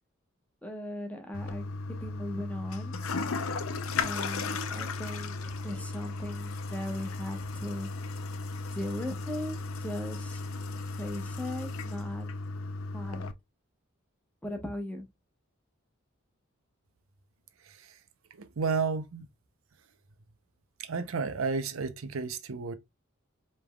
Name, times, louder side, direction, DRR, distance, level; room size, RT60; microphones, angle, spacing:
voice 1, 0.6-1.6 2.0-2.9 4.0-7.9 8.7-10.4 11.0-12.3 12.9-13.3 14.4-15.1, left 1 dB, 5° left, 1.0 m, -38 dB
Toilet flush, 1.3-13.3, left 3 dB, 85° left, 0.6 m, -35 dB
voice 2, 17.7-18.0 18.4-19.3 20.8-22.7, right 5 dB, 80° right, 0.7 m, -32 dB
5.2 x 3.3 x 2.3 m
head